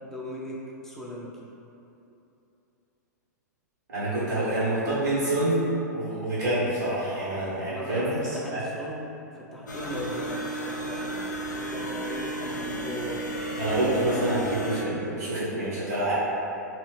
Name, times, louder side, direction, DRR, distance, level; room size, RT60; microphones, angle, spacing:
voice 1, 0.0-1.3 7.7-11.0 11.6-13.3, left 1 dB, 5° left, -6 dB, 0.5 m, -37 dB
voice 2, 3.9-5.6 5.9-8.6 13.6-16.1, right 1 dB, 65° right, -10 dB, 1.0 m, -27 dB
sound 1, 9.7-14.8, right 2 dB, 80° left, 0.4 m, -33 dB
2.9 x 2.6 x 3.3 m, 2.9 s
figure-of-eight pair, 105°, 10 cm